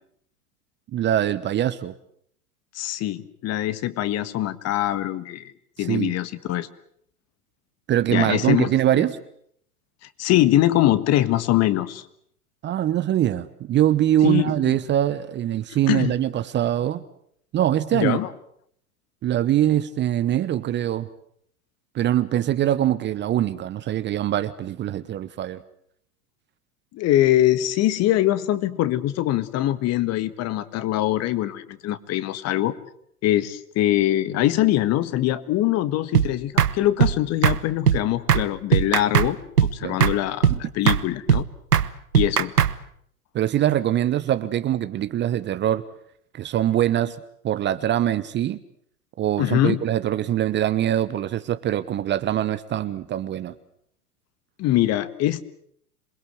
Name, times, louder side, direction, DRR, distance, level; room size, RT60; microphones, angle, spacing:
voice 1, 0.9-1.9 5.8-6.1 7.9-9.2 12.6-17.0 17.5-18.2 19.2-21.1 21.9-25.6 39.8-40.0 40.5-40.6 43.3-45.8 46.3-47.2 47.4-48.6 49.2-53.5, right 12 dB, 25° right, 13 dB, 1.0 m, -23 dB
voice 2, 2.7-5.5 5.8-6.7 8.1-9.0 10.2-12.0 14.2-14.8 15.9-16.1 17.9-18.3 26.9-32.7 33.2-39.4 39.7-41.4 42.1-42.5 49.4-49.8 54.6-55.4, left 14 dB, 35° left, 14 dB, 1.6 m, -23 dB
sound 1, 36.1-36.3 36.6-36.7 37.0-37.2 37.4-37.6 37.9-38.0 38.3-38.4 38.7-39.3 39.6-39.7 40.0-40.2 40.4-40.6 40.9-41.0 41.3-41.4 41.7-41.9 42.1-42.7, right 8 dB, 80° right, 1.2 m, -18 dB
27.5 x 21.5 x 8.0 m, 0.67 s
figure-of-eight pair, 95°, 46 cm